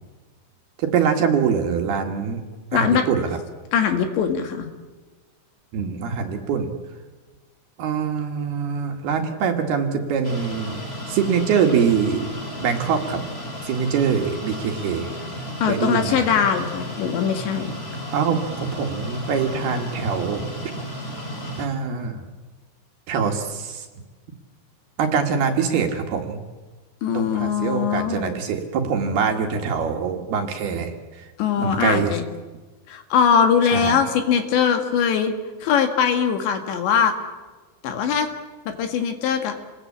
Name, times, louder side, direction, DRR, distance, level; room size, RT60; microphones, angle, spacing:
voice 1, 0.8-2.4 2.7-3.4 5.7-6.7 7.8-10.8 11.1-12.2 12.6-13.2 13.6-15.1 15.6-16.3 18.1-20.4 21.6-22.3 23.1-23.9 25.0-26.4 27.1-31.3 31.6-32.1 33.7-34.0, right 6 dB, 60° right, 4 dB, 3.4 m, -24 dB
voice 2, 2.7-3.0 3.7-4.7 15.6-17.7 27.0-28.4 31.4-32.2 32.9-35.3 35.6-37.1 37.8-38.3 38.7-39.5, left 7 dB, 70° left, 6 dB, 3.9 m, -21 dB
sound 1, 10.2-21.7, equal, 15° left, 2.5 m, -33 dB
28.5 x 20.0 x 8.6 m, 1.3 s
omnidirectional pair, 5.5 m